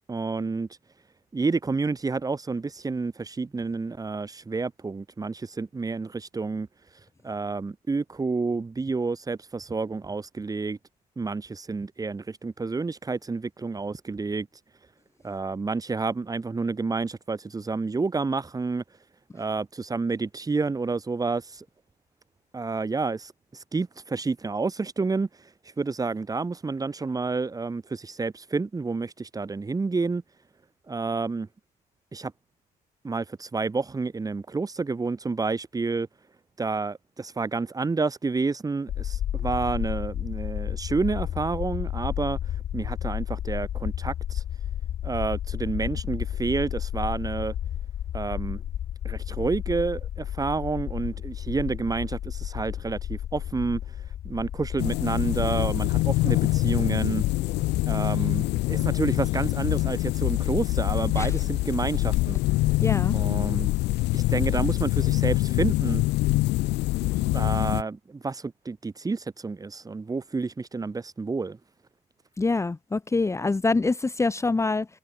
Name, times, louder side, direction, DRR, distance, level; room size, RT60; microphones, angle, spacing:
voice 1, 0.1-0.7 1.3-6.7 7.2-10.8 11.2-14.5 15.2-18.8 19.3-21.6 22.5-25.3 25.8-30.2 30.9-31.5 32.1-32.3 33.0-36.1 36.6-42.4 42.7-44.4 45.0-47.5 48.1-48.6 49.0-53.8 54.2-57.2 57.9-62.4 63.1-63.7 64.1-66.0 67.0-71.6, right 4 dB, 20° right, 3.4 m, -29 dB
sound 1, 38.9-58.1, left 11 dB, 60° left, 7.5 m, -32 dB
sound 2, 54.8-67.8, left 19 dB, 85° left, 3.9 m, -25 dB
voice 2, 62.8-63.2 72.4-74.9, left 3 dB, 15° left, 1.4 m, -25 dB
cardioid pair, 110°, 17 cm